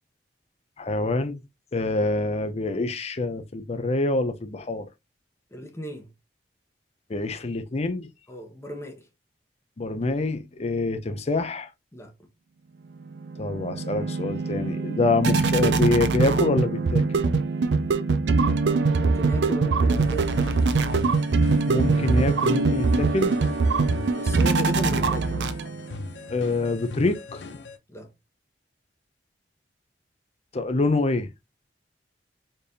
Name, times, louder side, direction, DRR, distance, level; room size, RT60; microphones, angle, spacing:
voice 1, 0.8-1.4 1.7-4.9 7.1-8.1 9.8-11.7 13.4-17.0 21.7-23.3 26.3-27.4 30.5-31.3, left 2 dB, 35° left, 0.5 m, -26 dB
voice 2, 5.5-6.1 8.3-9.0 11.9-12.1 18.9-20.4 20.8-21.0 23.7-25.5 27.9-28.1, right 1 dB, 15° left, 0.9 m, -36 dB
sound 1, 13.1-25.9, right 4 dB, 75° right, 0.5 m, -23 dB
sound 2, 19.9-27.8, left 3 dB, 80° left, 0.6 m, -40 dB
4.3 x 3.3 x 2.7 m
head